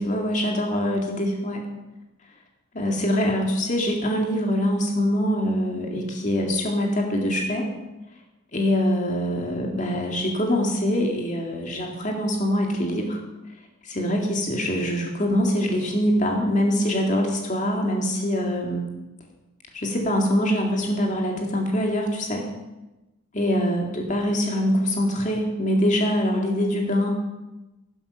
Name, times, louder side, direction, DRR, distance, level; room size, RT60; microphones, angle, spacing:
voice 1, 0.0-1.6 2.7-7.7 8.5-13.2 13.8-18.8 19.7-22.5 23.3-27.1, equal, 35° left, 1 dB, 2.1 m, -24 dB
12.0 x 11.0 x 5.7 m, 1.0 s
head